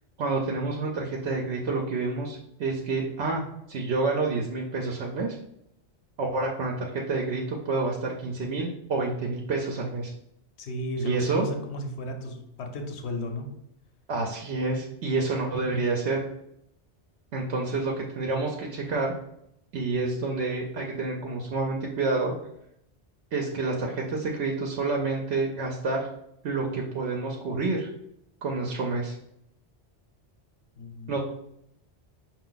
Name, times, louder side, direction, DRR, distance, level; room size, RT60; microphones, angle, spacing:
voice 1, 0.2-5.4 6.2-10.1 11.0-11.5 14.1-16.2 17.3-19.1 19.7-22.3 23.3-26.1 26.4-27.9 28.4-29.1 31.1-31.2, right 3 dB, 75° right, 0 dB, 0.9 m, -28 dB
voice 2, 10.6-13.5 15.5-15.8 30.8-31.2, equal, 75° left, 5 dB, 1.0 m, -34 dB
5.4 x 2.6 x 3.8 m, 0.78 s
omnidirectional pair, 1.2 m